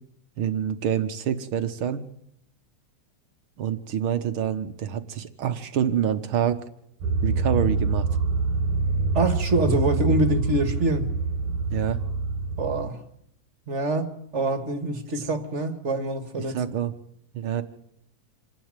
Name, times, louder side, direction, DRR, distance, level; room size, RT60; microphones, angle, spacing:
voice 1, 0.4-2.0 3.6-6.6 7.2-8.1 11.7-12.0 15.1-15.2 16.4-16.9 17.3-17.6, right 9 dB, 60° right, 1.6 m, -26 dB
sound 1, 7.0-12.9, right 4 dB, 80° right, 2.7 m, -25 dB
voice 2, 9.1-11.1 12.6-13.0 13.7-16.6, right 2 dB, 30° right, 1.6 m, -25 dB
27.0 x 11.5 x 9.1 m
omnidirectional pair, 3.4 m